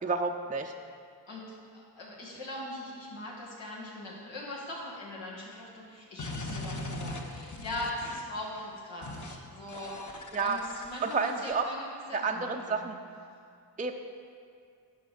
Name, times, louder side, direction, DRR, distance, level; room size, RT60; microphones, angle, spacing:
voice 1, 0.0-0.7 10.3-10.6 11.0-11.7 12.1-13.0 13.8-13.9, right 4 dB, 20° right, 4 dB, 0.5 m, -30 dB
voice 2, 1.7-12.9, left 1 dB, 85° left, -5 dB, 2.2 m, -41 dB
sound 1, 6.2-8.4 9.0-9.4 9.7-11.5, left 2 dB, 40° left, 1.0 m, -40 dB
10.5 x 5.1 x 5.1 m, 2.3 s
cardioid pair, 45°, 44 cm